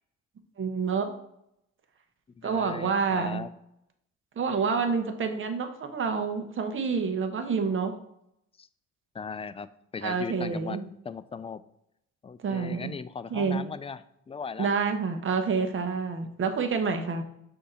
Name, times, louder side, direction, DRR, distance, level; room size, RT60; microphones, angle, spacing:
voice 1, 0.6-1.1 2.4-3.4 4.4-7.9 10.0-10.9 12.4-12.9 13.3-13.6 14.6-17.2, right 5 dB, 40° right, 6 dB, 0.9 m, -28 dB
voice 2, 2.4-3.5 8.6-8.7 9.1-9.7 9.9-10.8 11.0-11.6 12.2-14.7, left 5 dB, 20° left, 14 dB, 0.3 m, -38 dB
6.2 x 2.8 x 5.5 m, 0.76 s
cardioid pair, 90°, 30 cm